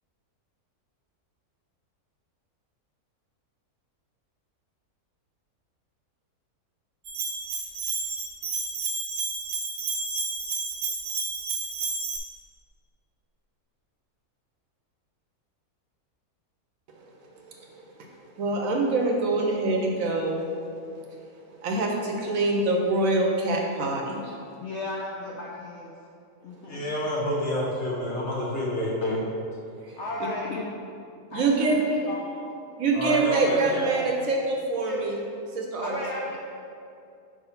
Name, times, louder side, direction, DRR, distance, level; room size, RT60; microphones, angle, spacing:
Bell, 7.0-12.2, right 4 dB, 85° right, 1.3 m, -31 dB
voice 1, 18.4-20.4 21.6-24.4 29.8-30.0 30.3-30.4 31.3-31.8 32.8-35.2 35.5-35.9, right 2 dB, 70° right, 1 dB, 1.0 m, -25 dB
voice 2, 24.6-25.9 26.4-27.0 29.0-29.2 30.0-30.9 31.3-32.5 34.9-35.0 35.8-36.4, left 2 dB, 65° left, -3 dB, 0.7 m, -33 dB
voice 3, 26.7-28.9 32.9-34.0, equal, 50° left, -5 dB, 1.4 m, -28 dB
4.8 x 3.7 x 5.6 m, 2.5 s
omnidirectional pair, 1.6 m